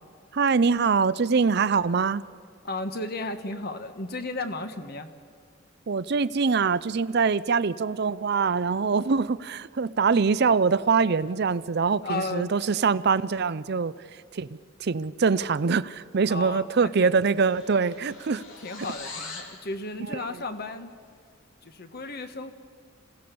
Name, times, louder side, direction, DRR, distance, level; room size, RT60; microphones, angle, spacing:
voice 1, 0.3-2.2 5.9-13.9 14.3-14.5 14.8-18.4, right 5 dB, 55° right, 17 dB, 0.5 m, -23 dB
voice 2, 2.6-5.1 12.0-12.5 16.3-17.1 18.6-20.9 21.6-22.5, left 2 dB, 50° left, 8 dB, 1.4 m, -34 dB
sound 1, 16.9-19.6, left 4 dB, 85° left, 3.3 m, -42 dB
27.0 x 16.5 x 6.9 m, 2.3 s
head